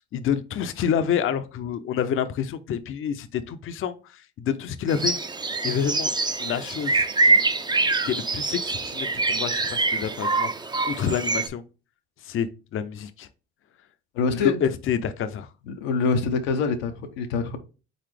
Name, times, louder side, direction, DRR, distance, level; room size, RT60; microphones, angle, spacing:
voice 1, 0.1-5.1 5.6-6.1 6.4-7.4 8.0-10.5 10.9-11.6 12.2-13.3 14.3-15.5, left 8 dB, 45° left, 0.5 m, -28 dB
sound 1, 4.9-11.5, right 3 dB, 15° right, 0.4 m, -24 dB
voice 2, 14.1-14.6 15.7-17.6, left 4 dB, 90° left, 0.7 m, -25 dB
4.0 x 4.0 x 3.2 m
supercardioid pair, 75°, 30 cm